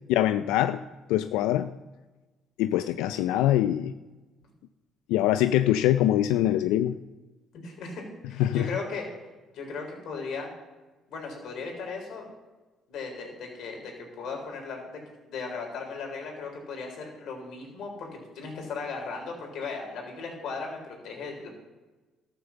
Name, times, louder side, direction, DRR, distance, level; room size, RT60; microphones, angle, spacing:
voice 1, 0.1-0.8 1.1-1.7 2.6-3.9 5.1-6.9 8.4-8.7, left 13 dB, 90° left, 11 dB, 0.4 m, -23 dB
voice 2, 7.5-9.1 9.5-10.5 11.1-12.3 12.9-15.0 15.3-21.5, left 4 dB, 70° left, 1 dB, 4.0 m, -37 dB
13.0 x 6.8 x 7.1 m, 1.2 s
cardioid pair, 90°, 0 cm